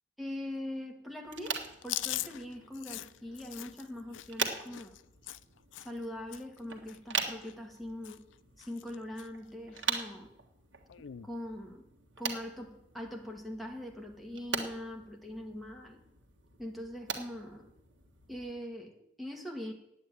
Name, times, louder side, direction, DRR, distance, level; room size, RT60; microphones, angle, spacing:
voice 1, 0.2-5.0 5.8-8.2 8.6-10.3 11.2-11.8 12.2-16.0 16.6-17.7 18.3-19.7, left 1 dB, ahead, 1 dB, 1.8 m, -42 dB
sound 1, 1.2-18.5, right 6 dB, 75° right, 1.6 m, -42 dB
Chewing mastication, 1.8-6.1 6.3-6.6 6.9-8.3 8.6-9.3 9.7-9.8 10.9-11.3, left 14 dB, 85° left, 0.4 m, -41 dB
9.4 x 8.4 x 9.1 m, 0.82 s
head